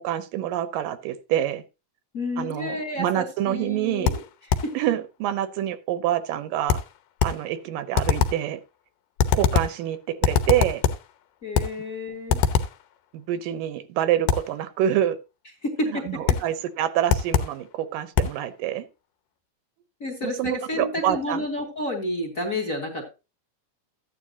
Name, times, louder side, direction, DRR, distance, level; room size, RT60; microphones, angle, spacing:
voice 1, 0.0-1.6 2.4-4.1 4.7-6.8 7.2-8.6 9.3-10.8 13.1-15.2 15.9-18.9 20.2-21.4, right 11 dB, 85° right, 2.5 m, -26 dB
voice 2, 2.1-4.2 4.6-4.7 11.4-12.4 15.6-16.4 20.0-23.1, left 1 dB, 30° left, 1.9 m, -30 dB
sound 1, 4.1-4.8 6.7-7.5 8.0-8.5 9.2-9.8 10.2-11.1 11.5-11.8 12.3-12.8 14.3-14.6 16.3-16.6 17.1-17.6 18.2-18.4, left 7 dB, 80° left, 2.4 m, -23 dB
13.5 x 9.4 x 2.7 m
omnidirectional pair, 3.8 m